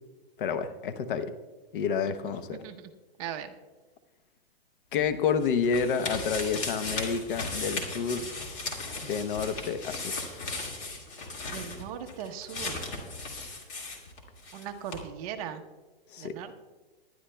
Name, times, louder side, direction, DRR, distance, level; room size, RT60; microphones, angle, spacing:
voice 1, 0.4-1.3 1.7-2.6 4.9-8.3 9.0-10.2 16.1-16.4, left 6 dB, 55° left, 11 dB, 0.9 m, -29 dB
voice 2, 2.5-2.9 3.2-3.5 11.5-12.8 14.5-15.6 16.2-16.6, right 9 dB, 35° right, 6 dB, 0.9 m, -39 dB
sound 1, 5.0-14.6 14.9-15.0, left 3 dB, 25° left, 2.0 m, -36 dB
20.5 x 11.0 x 2.2 m, 1.2 s
hypercardioid pair, 150°, 31 cm